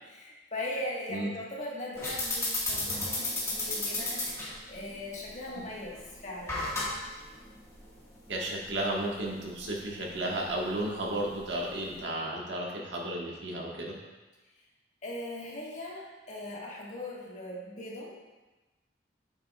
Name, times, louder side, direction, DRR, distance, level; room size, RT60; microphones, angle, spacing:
voice 1, 0.1-6.6 15.0-18.2, left 1 dB, 40° left, -4 dB, 1.6 m, -39 dB
sound 1, 2.0-12.0, left 2 dB, 15° left, 1.7 m, -36 dB
voice 2, 8.3-14.0, right 1 dB, 90° right, -3 dB, 1.6 m, -33 dB
8.8 x 7.3 x 2.4 m, 1.2 s
head